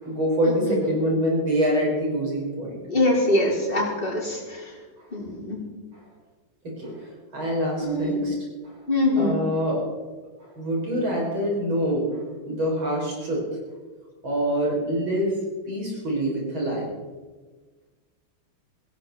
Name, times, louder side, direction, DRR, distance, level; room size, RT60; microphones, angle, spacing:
voice 1, 0.0-2.8 5.0-5.1 5.9-6.0 6.8-8.3 8.6-8.8 9.2-9.8 10.4-12.1 12.4-13.4 14.2-15.3 15.6-16.9, equal, 70° right, -3 dB, 6.3 m, -25 dB
voice 2, 2.9-4.6 5.1-5.6 7.8-8.2 8.9-9.4, left 1 dB, 25° left, -4 dB, 4.6 m, -23 dB
18.0 x 16.5 x 4.4 m, 1.4 s
omnidirectional pair, 2.3 m